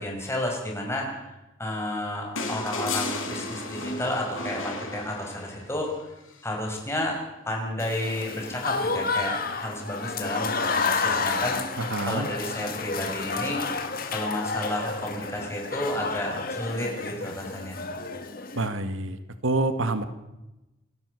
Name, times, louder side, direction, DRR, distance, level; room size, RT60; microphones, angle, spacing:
voice 1, 0.0-5.9 6.4-7.2 7.5-13.6 14.1-17.8, left 1 dB, 15° left, 0 dB, 5.7 m, -31 dB
sound 1, 2.4-5.7 7.2-7.3, left 3 dB, 85° left, 4.1 m, -33 dB
Applause / Crowd, 7.8-18.7, left 4 dB, 45° left, 2.0 m, -30 dB
voice 2, 11.8-12.3 18.5-19.2 19.4-20.1, right 2 dB, 80° right, 11 dB, 1.6 m, -27 dB
28.0 x 12.5 x 8.2 m, 0.99 s
head